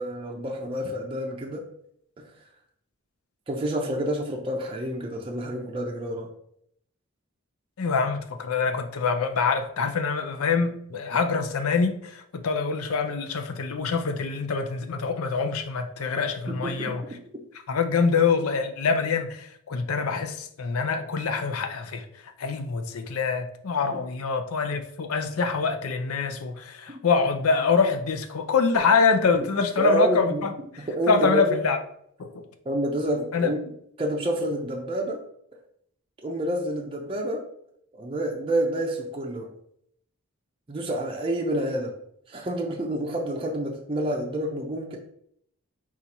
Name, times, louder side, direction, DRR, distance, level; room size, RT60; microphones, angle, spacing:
voice 1, 0.0-1.6 2.2-2.3 3.5-6.3 16.5-17.0 23.9-24.0 29.3-29.4 29.8-30.5 30.9-31.6 32.7-33.6 34.0-35.2 36.2-37.4 37.9-39.5 40.7-41.9 42.3-45.0, right 1 dB, 25° right, 0 dB, 0.5 m, -28 dB
voice 2, 7.8-17.0 17.7-22.1 22.4-30.5 31.1-31.8 32.2-32.4 33.3-33.5, left 5 dB, 85° left, 7 dB, 0.5 m, -25 dB
4.2 x 2.4 x 4.1 m, 0.70 s
head